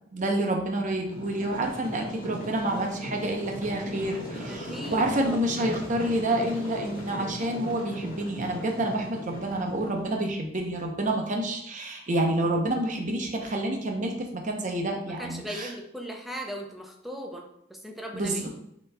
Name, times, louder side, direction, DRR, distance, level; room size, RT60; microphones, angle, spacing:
voice 1, 0.1-15.7 18.1-18.5, right 1 dB, 45° right, 2 dB, 0.7 m, -28 dB
sound 1, 1.1-10.2, equal, 50° left, 1.5 m, -38 dB
voice 2, 4.5-5.4 15.2-18.5, equal, ahead, 1 dB, 0.6 m, -38 dB
7.6 x 3.0 x 2.2 m, 0.73 s
head